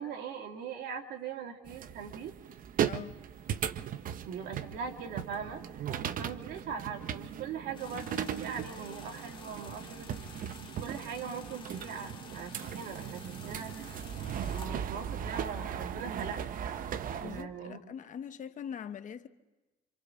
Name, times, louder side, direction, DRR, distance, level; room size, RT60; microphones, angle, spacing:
voice 1, 0.0-2.3 4.2-10.1 10.6-14.0 14.5-16.5 17.1-17.8, right 6 dB, 75° right, 2.5 m, -41 dB
sound 1, 1.7-17.4, right 9 dB, 55° right, 0.9 m, -38 dB
voice 2, 2.8-3.2 17.2-19.3, left 8 dB, 50° left, 1.2 m, -42 dB
sound 2, 7.7-14.7, left 5 dB, 30° left, 2.2 m, -51 dB
27.0 x 27.0 x 3.8 m
cardioid pair, 110°, 17 cm